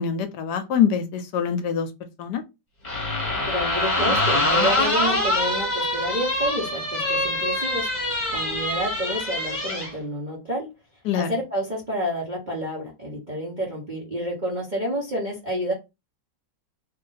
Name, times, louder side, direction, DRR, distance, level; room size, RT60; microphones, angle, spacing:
voice 1, 0.0-1.9 2.2-2.4 11.0-11.4, left 7 dB, 75° left, 1.1 m, -24 dB
sound 1, 2.8-9.9, left 1 dB, 25° left, 1.2 m, -24 dB
voice 2, 3.5-10.7 11.1-15.7, equal, 35° right, 0.9 m, -29 dB
3.0 x 2.5 x 3.8 m
omnidirectional pair, 1.9 m